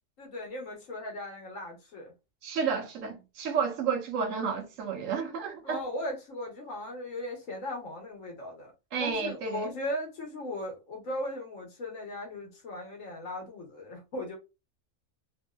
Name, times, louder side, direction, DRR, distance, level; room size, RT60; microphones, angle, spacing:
voice 1, 0.2-2.1 5.6-8.7 9.0-14.4, left 1 dB, 80° left, 1.6 m, -37 dB
voice 2, 2.4-5.8 8.9-9.7, right 6 dB, 80° right, 1.2 m, -31 dB
3.4 x 2.6 x 2.3 m
omnidirectional pair, 1.3 m